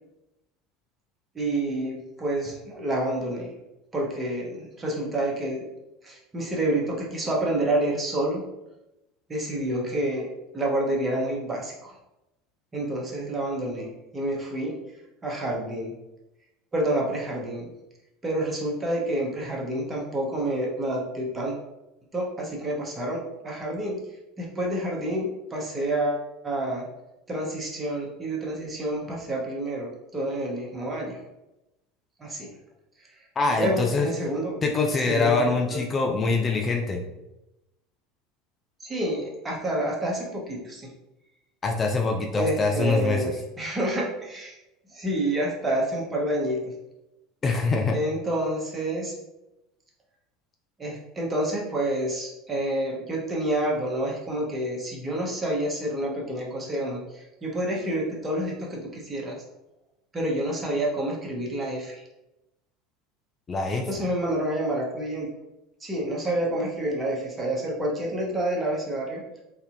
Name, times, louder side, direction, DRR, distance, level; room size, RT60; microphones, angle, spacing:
voice 1, 1.3-3.5 3.9-5.7 6.0-8.4 9.3-10.3 10.5-11.9 12.7-13.9 14.1-14.7 15.2-15.9 16.7-17.7 18.2-21.6 22.1-24.0 24.4-26.8 27.3-31.2 32.2-32.5 33.6-34.5 35.1-35.4 35.7-35.8 38.8-40.9 42.4-43.3 43.6-44.5 44.9-46.6 47.9-49.1 50.8-59.4 60.1-62.0 63.9-65.3 65.8-69.2, right 1 dB, 25° right, -2 dB, 1.0 m, -28 dB
voice 2, 33.4-34.1 34.6-37.0 41.6-43.3 47.4-48.0 63.5-64.1, left 3 dB, 30° left, 1 dB, 0.4 m, -24 dB
3.3 x 2.7 x 2.6 m, 0.93 s
figure-of-eight pair, 70°, 0 cm